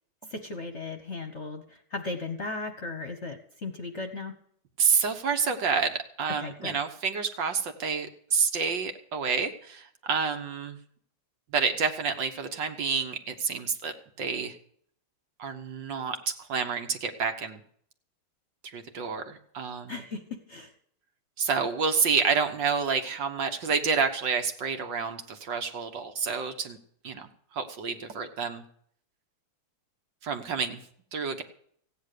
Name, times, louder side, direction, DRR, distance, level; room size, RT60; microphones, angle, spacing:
voice 1, 0.3-4.3 6.4-6.8 19.9-20.7, left 3 dB, 40° left, 7 dB, 1.2 m, -36 dB
voice 2, 4.8-10.8 11.5-14.5 15.4-17.6 18.6-20.0 21.4-26.8 27.0-28.6 30.2-30.8 31.1-31.4, right 5 dB, 60° right, 7 dB, 1.9 m, -29 dB
16.0 x 9.6 x 6.7 m, 0.62 s
omnidirectional pair, 2.4 m